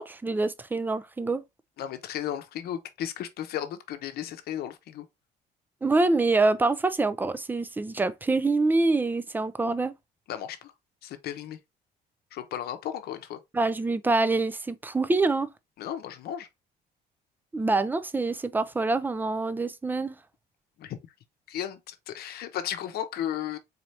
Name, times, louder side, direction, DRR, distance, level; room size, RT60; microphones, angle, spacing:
voice 1, 0.0-1.4 5.8-9.9 13.5-15.5 17.5-20.2, right 3 dB, 10° right, 0.4 m, -25 dB
voice 2, 1.8-5.0 10.3-10.7 11.0-11.6 12.3-13.4 15.8-16.5 20.8-21.0 21.5-23.6, left 10 dB, 65° left, 0.8 m, -34 dB
4.1 x 2.8 x 3.2 m
cardioid pair, 110°, 17 cm